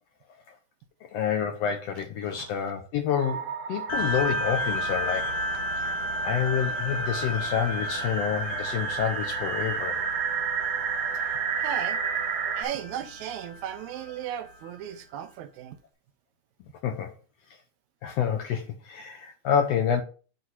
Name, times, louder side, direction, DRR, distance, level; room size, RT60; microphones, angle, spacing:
voice 1, 1.0-5.3 5.8-5.9 6.2-10.0 16.8-17.1 18.0-20.0, left 8 dB, 75° left, 1.6 m, -28 dB
sound 1, 3.2-12.6, right 6 dB, 55° right, 1.5 m, -32 dB
sound 2, 3.9-14.8, equal, 90° left, 2.7 m, -33 dB
voice 2, 11.6-12.0 12.6-15.8, right 10 dB, 80° right, 2.0 m, -36 dB
8.1 x 2.7 x 6.0 m
omnidirectional pair, 3.4 m